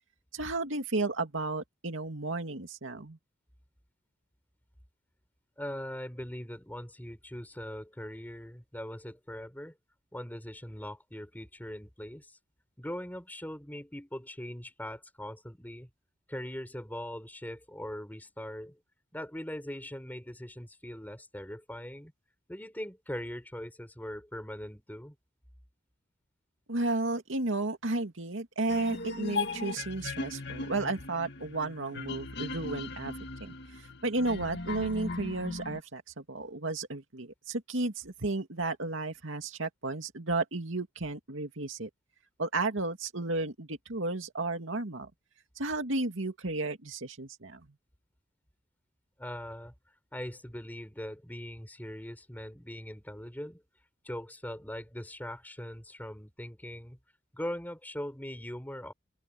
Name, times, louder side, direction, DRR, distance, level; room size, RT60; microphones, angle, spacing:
voice 1, 0.3-3.2 26.7-33.1 33.4-41.9 42.4-45.1 45.6-47.7, right 2 dB, 75° right, 2.4 m, -33 dB
voice 2, 5.6-9.7 10.1-12.4 12.8-15.9 16.3-18.8 19.1-22.1 22.5-25.2 49.2-49.7 50.1-53.6 54.0-57.0 57.3-58.9, equal, 10° left, 4.2 m, -41 dB
sound 1, 28.7-35.8, left 3 dB, 55° left, 2.2 m, -38 dB
open air
head